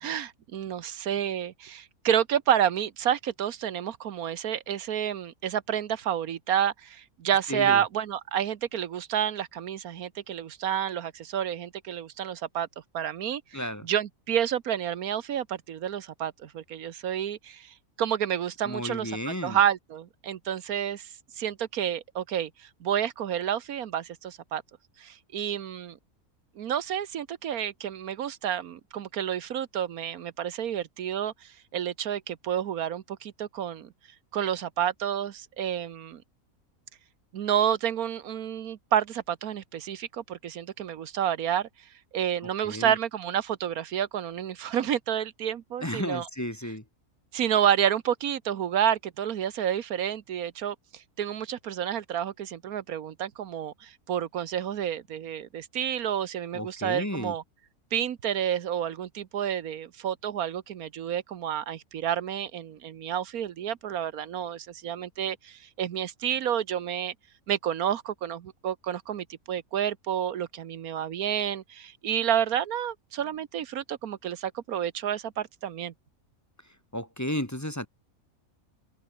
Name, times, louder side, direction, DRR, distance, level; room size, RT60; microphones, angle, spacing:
voice 1, 0.0-12.7 12.9-24.6 25.0-26.0 26.6-33.9 34.3-36.2 37.3-46.3 47.3-57.4 57.9-67.1 67.5-75.9, right 9 dB, 80° right, 1.4 m, -30 dB
voice 2, 7.5-7.8 13.5-13.9 18.6-19.6 42.6-43.0 45.8-46.8 56.5-57.3 76.9-77.9, equal, 10° left, 1.9 m, -33 dB
open air
omnidirectional pair, 1.5 m